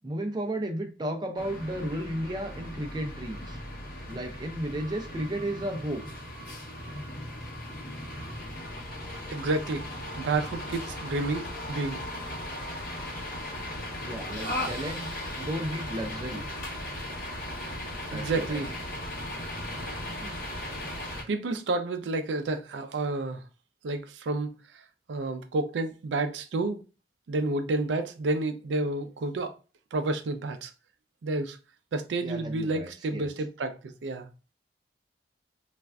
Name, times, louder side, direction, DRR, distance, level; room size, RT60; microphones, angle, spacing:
voice 1, 0.0-3.6 4.1-6.0 14.0-15.1 15.4-16.4 18.1-18.8 20.2-20.3 32.2-33.3, right 1 dB, 25° right, 0.4 m, -34 dB
sound 1, 1.3-21.2, left 1 dB, 50° left, 0.8 m, -37 dB
voice 2, 9.3-9.8 10.2-12.0 18.1-18.7 21.3-23.4 23.8-24.5 25.1-26.8 27.3-29.5 29.9-30.7 31.2-31.6 31.9-34.3, right 2 dB, 90° right, 0.4 m, -30 dB
3.2 x 2.4 x 2.3 m
head